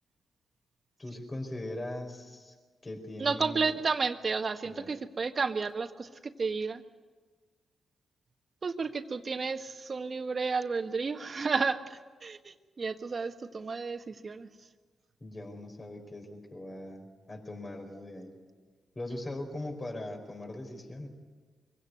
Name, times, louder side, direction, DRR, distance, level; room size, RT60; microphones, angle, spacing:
voice 1, 1.0-2.5 2.8-3.8 4.6-4.9 15.2-18.4 18.9-21.1, left 1 dB, 35° left, 3 dB, 4.8 m, -40 dB
voice 2, 3.2-6.8 8.6-14.5, right 4 dB, 50° right, 8 dB, 1.5 m, -32 dB
24.5 x 16.5 x 9.5 m, 1.4 s
hypercardioid pair, 45°, 0 cm